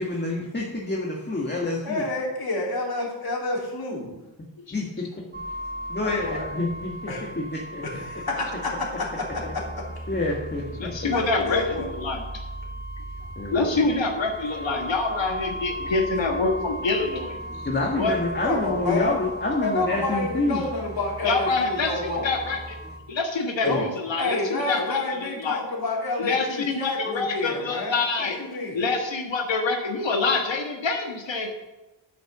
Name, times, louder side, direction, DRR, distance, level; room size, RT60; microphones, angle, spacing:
voice 1, 0.0-2.1 4.7-5.1 5.9-6.9 7.4-7.5 7.7-7.8 9.4-9.5 10.1-10.9 13.4-13.6 17.7-20.6 23.6-23.9, left 2 dB, 25° left, -1 dB, 1.6 m, -27 dB
voice 2, 1.8-4.1 6.0-6.5 7.1-7.3 7.8-9.6 11.1-11.9 18.4-19.2 19.6-22.3 23.6-23.8 24.2-28.8, left 2 dB, 55° left, -2 dB, 3.2 m, -29 dB
sound 1, 5.3-23.0, equal, 20° right, 2.6 m, -37 dB
voice 3, 10.8-11.6 12.0-12.4 13.5-17.4 18.0-18.2 21.2-22.6 23.1-25.6 26.2-28.4 28.7-31.5, left 3 dB, 80° left, 3 dB, 1.6 m, -26 dB
9.9 x 6.0 x 7.2 m, 1.0 s
wide cardioid pair, 95°, 44 cm